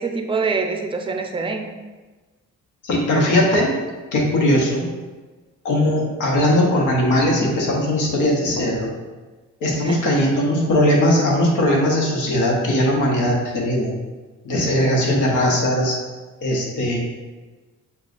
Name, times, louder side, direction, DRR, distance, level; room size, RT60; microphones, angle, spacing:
voice 1, 0.0-1.7 9.7-10.1, right 4 dB, 20° right, 4 dB, 0.4 m, -25 dB
voice 2, 2.8-3.8 4.1-4.9 5.6-8.9 9.6-13.9 14.4-16.0 16.4-17.0, left 1 dB, 85° left, -1 dB, 1.0 m, -19 dB
6.8 x 2.3 x 2.5 m, 1.3 s
cardioid pair, 90°, 30 cm